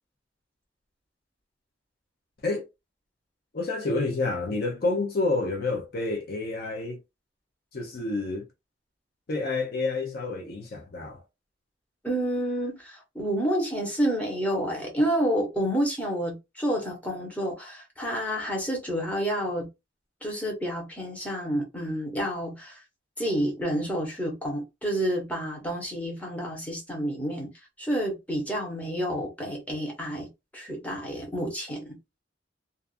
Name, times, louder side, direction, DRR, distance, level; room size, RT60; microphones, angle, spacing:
voice 1, 3.5-7.0 7.7-8.5 9.3-11.2, left 3 dB, 55° left, 0.5 m, -29 dB
voice 2, 12.0-19.7 20.2-22.8 23.2-27.5 27.8-32.0, equal, 10° left, 1.0 m, -29 dB
2.5 x 2.4 x 2.4 m
head